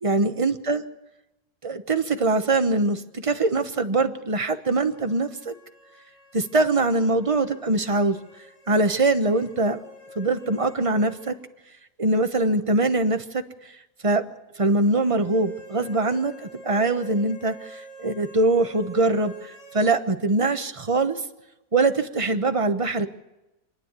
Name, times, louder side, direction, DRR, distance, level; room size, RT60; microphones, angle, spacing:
voice 1, 0.0-0.8 1.6-5.5 6.3-8.2 8.7-9.8 10.2-11.4 12.0-13.7 14.0-14.3 14.5-21.2 21.7-23.1, right 2 dB, 25° right, 8 dB, 0.8 m, -23 dB
sound 1, 4.8-11.4 11.7-11.8 14.8-20.0, right 1 dB, 75° left, 4.2 m, -47 dB
27.5 x 10.0 x 9.6 m, 0.95 s
omnidirectional pair, 1.9 m